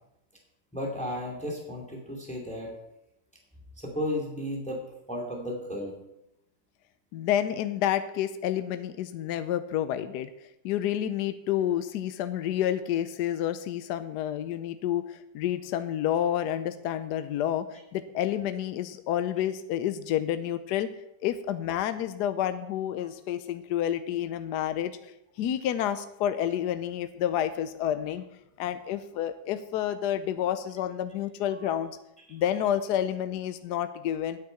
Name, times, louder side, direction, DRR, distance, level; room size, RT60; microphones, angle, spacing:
voice 1, 0.7-2.7 3.8-4.8 5.1-5.9, left 1 dB, 5° left, 0 dB, 2.3 m, -33 dB
voice 2, 7.1-10.3 10.6-17.7 17.9-20.9 21.2-24.9 25.4-28.2 28.6-31.9 32.3-34.4, left 10 dB, 75° left, 11 dB, 1.1 m, -29 dB
9.3 x 6.5 x 8.5 m, 0.87 s
omnidirectional pair, 1.9 m